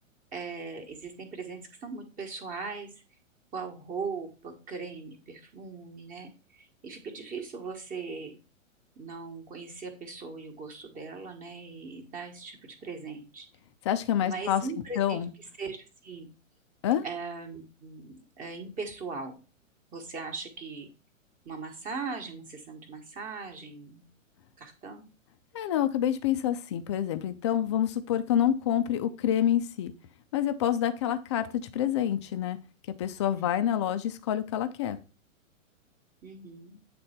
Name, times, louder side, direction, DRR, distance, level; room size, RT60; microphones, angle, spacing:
voice 1, 0.3-2.9 3.5-8.4 9.0-13.5 14.2-15.2 15.6-16.3 17.0-19.3 19.9-20.9 21.4-24.0 24.6-25.1 33.4-33.5 36.2-36.8, right 4 dB, 20° right, 5 dB, 1.2 m, -39 dB
voice 2, 13.8-14.6 15.0-15.3 16.8-17.0 25.5-29.9 30.3-32.6 33.0-35.0, left 10 dB, 25° left, 10 dB, 0.4 m, -27 dB
8.5 x 3.4 x 4.2 m, 0.33 s
figure-of-eight pair, 110°, 41 cm